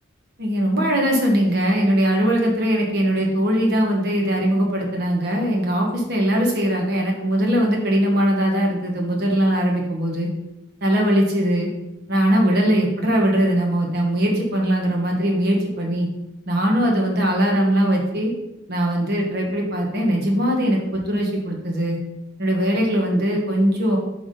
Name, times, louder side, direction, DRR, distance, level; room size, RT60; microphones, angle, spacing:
voice 1, 0.4-10.3 10.8-11.7 12.1-16.1 16.5-18.3 18.7-22.0 22.4-24.0, equal, 55° right, 0 dB, 1.2 m, -20 dB
6.2 x 3.5 x 5.2 m, 0.91 s
head